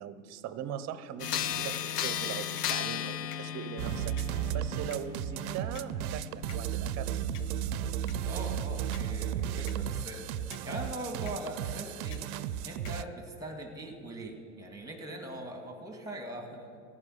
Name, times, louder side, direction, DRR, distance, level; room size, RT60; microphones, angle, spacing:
voice 1, 0.0-4.2 4.5-7.3, right 9 dB, 35° right, 13 dB, 0.9 m, -40 dB
sound 1, 1.2-10.6 11.3-11.4 12.1-12.2 12.8-12.9, left 9 dB, 85° left, 0.8 m, -37 dB
sound 2, 3.8-13.0, right 10 dB, 65° right, 0.7 m, -34 dB
voice 2, 8.3-10.2 10.6-12.2 12.6-16.8, right 1 dB, 10° right, 3 dB, 2.1 m, -41 dB
14.5 x 5.8 x 9.8 m, 2.2 s
hypercardioid pair, 105°, 46 cm